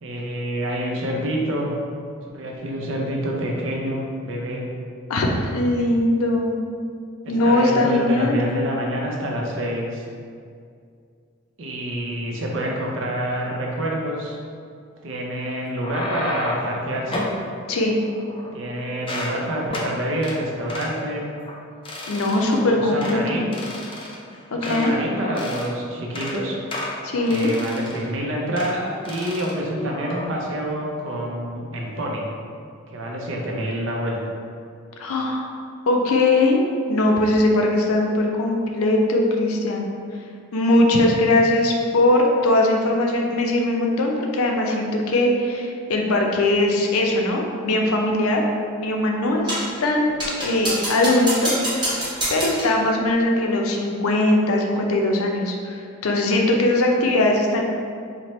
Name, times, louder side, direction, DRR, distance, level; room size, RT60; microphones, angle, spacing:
voice 1, 0.0-1.8 2.3-4.6 7.2-10.0 11.6-14.4 15.0-17.2 18.5-21.3 22.4-23.5 24.5-26.6 27.3-32.3 32.9-34.2, equal, 65° right, -1 dB, 0.5 m, -27 dB
voice 2, 5.1-6.6 7.3-8.4 17.7-18.0 22.1-23.4 24.5-24.9 27.0-27.5 35.0-35.5 35.9-39.9 40.5-48.4 48.8-57.6, left 1 dB, 85° left, 1 dB, 0.5 m, -20 dB
sound 1, 15.6-16.7 17.1-17.4 18.0-18.7 19.0-19.4 19.7-19.9 20.2-20.4 20.7-20.9 21.4-21.6 21.9-22.6 23.0-23.2 23.5-25.0 25.3-25.7 26.0-26.4 26.7-28.1 28.6-28.8 29.1-29.6 29.9-30.3, left 1 dB, 25° left, 0.3 m, -32 dB
sound 2, 49.5-49.8 50.2-52.8, right 1 dB, 20° right, 0.9 m, -26 dB
4.2 x 2.1 x 3.1 m, 2.3 s
head